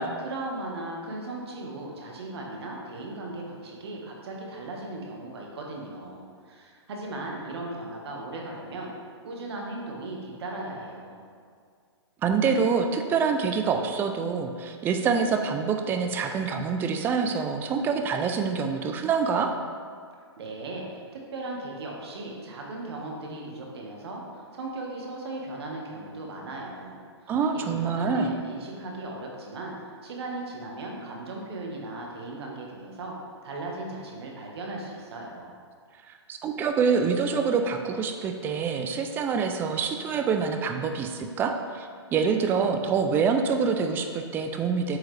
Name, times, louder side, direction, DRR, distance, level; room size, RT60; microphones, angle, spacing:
voice 1, 0.2-8.9 9.2-11.2 20.4-29.7 30.0-33.2 33.4-35.6, right 2 dB, 60° right, -1 dB, 1.5 m, -37 dB
voice 2, 12.2-19.5 27.3-28.3 36.1-45.0, right 5 dB, 15° right, 5 dB, 0.3 m, -26 dB
7.8 x 4.7 x 3.3 m, 2.1 s
hypercardioid pair, 140°, 15 cm